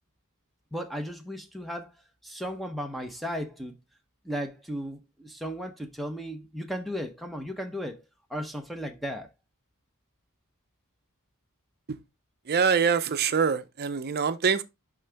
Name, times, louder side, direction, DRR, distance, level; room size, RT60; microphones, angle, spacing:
voice 1, 0.7-1.9 2.2-3.7 4.2-8.0 8.3-9.3, equal, ahead, 0.8 m, -35 dB
voice 2, 12.5-14.6, right 6 dB, 45° right, 0.6 m, -24 dB
11.0 x 3.8 x 3.4 m
head